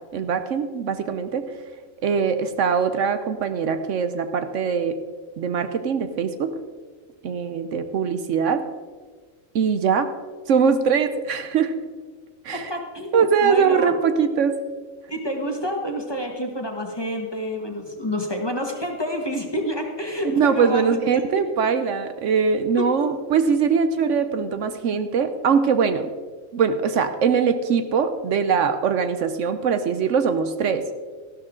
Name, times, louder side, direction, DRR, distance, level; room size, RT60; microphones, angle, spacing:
voice 1, 0.1-1.4 2.0-5.0 5.4-6.6 7.2-8.6 9.5-10.1 10.5-11.8 12.4-12.7 13.1-14.6 20.2-26.1 26.5-30.9, right 6 dB, 70° right, 10 dB, 1.0 m, -22 dB
voice 2, 12.5-13.9 15.1-21.2 23.0-23.1, equal, 20° left, 2 dB, 1.4 m, -28 dB
13.5 x 12.5 x 3.7 m, 1.5 s
omnidirectional pair, 1.4 m